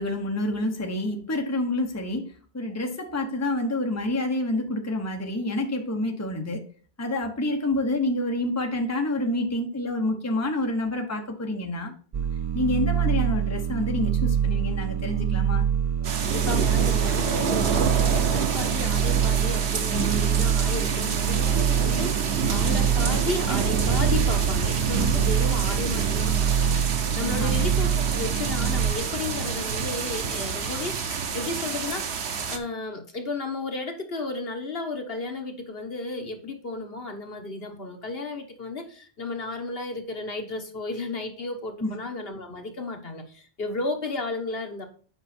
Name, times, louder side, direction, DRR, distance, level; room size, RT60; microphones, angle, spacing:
voice 1, 0.0-6.6 7.0-11.9 12.5-15.6 27.4-27.6 41.8-41.9, left 1 dB, 15° left, 1.0 m, -28 dB
sound 1, 12.1-28.9, right 8 dB, 45° right, 0.4 m, -25 dB
voice 2, 16.0-32.1 32.5-44.9, left 3 dB, 65° left, 1.5 m, -33 dB
sound 2, 16.0-32.6, right 6 dB, 85° right, 1.2 m, -28 dB
8.0 x 5.4 x 4.3 m
omnidirectional pair, 1.1 m